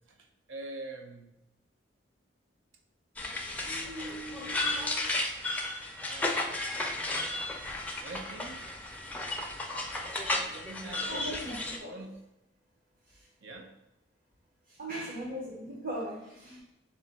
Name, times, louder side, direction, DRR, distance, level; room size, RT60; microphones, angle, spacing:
voice 1, 0.1-1.3 3.5-5.3 6.0-6.7 7.6-8.8 10.4-11.4 11.8-12.2 13.4-13.7, right 2 dB, 80° right, 3 dB, 0.6 m, -45 dB
sound 1, 3.2-11.8, left 2 dB, 10° left, 0.4 m, -34 dB
voice 2, 11.1-12.0 13.1-13.2 14.7-16.6, equal, 45° right, -4 dB, 0.8 m, -39 dB
3.6 x 3.2 x 4.0 m, 0.91 s
head